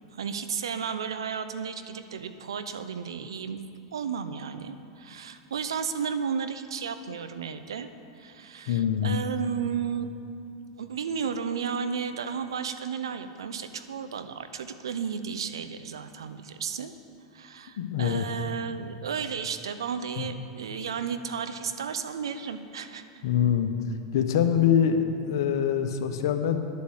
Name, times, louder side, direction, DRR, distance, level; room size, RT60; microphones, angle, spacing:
voice 1, 0.1-3.6 3.9-7.9 8.2-10.2 10.8-16.9 17.3-23.0, right 6 dB, 85° right, 10 dB, 0.7 m, -33 dB
voice 2, 8.7-9.2 17.8-18.2 20.2-20.3 23.2-23.7 24.1-26.6, left 9 dB, 70° left, 7 dB, 1.1 m, -24 dB
10.5 x 8.4 x 8.1 m, 2.6 s
hypercardioid pair, 100°, 2 cm